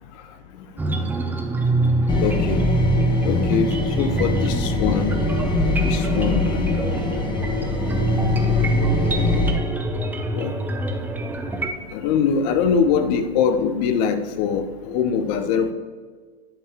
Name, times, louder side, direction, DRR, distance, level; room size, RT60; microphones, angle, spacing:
sound 1, 0.8-11.7, right 1 dB, 5° right, 0.5 m, -24 dB
sound 2, 2.1-9.5, left 3 dB, 15° left, 0.9 m, -24 dB
voice 1, 2.2-2.6 3.2-5.2 5.8-6.7 7.7-8.4 10.3-10.6 11.9-15.7, left 6 dB, 45° left, 9 dB, 0.9 m, -23 dB
10.0 x 5.4 x 3.5 m, 1.5 s
hypercardioid pair, 115°, 31 cm